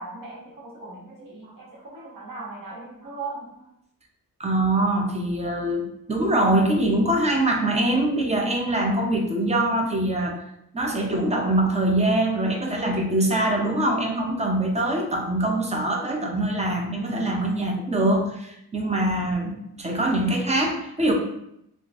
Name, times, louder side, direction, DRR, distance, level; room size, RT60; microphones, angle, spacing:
voice 1, 0.0-3.7, right 3 dB, 60° right, -5 dB, 1.2 m, -38 dB
voice 2, 4.4-10.4 10.7-21.1, right 1 dB, 20° right, 1 dB, 0.4 m, -23 dB
3.7 x 2.4 x 2.4 m, 0.77 s
wide cardioid pair, 140°, 38 cm